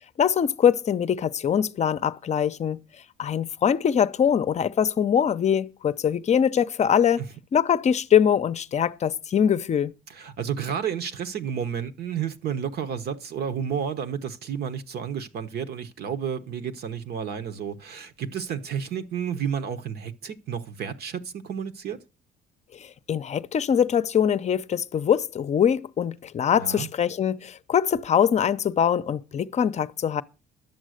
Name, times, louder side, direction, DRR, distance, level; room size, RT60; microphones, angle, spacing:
voice 1, 0.2-2.8 3.2-7.2 7.5-9.9 22.7-30.2, left 8 dB, 40° left, 0.6 m, -23 dB
voice 2, 10.1-22.0 26.5-26.9, right 8 dB, 60° right, 1.1 m, -31 dB
11.0 x 7.4 x 6.5 m
cardioid pair, 115°, 18 cm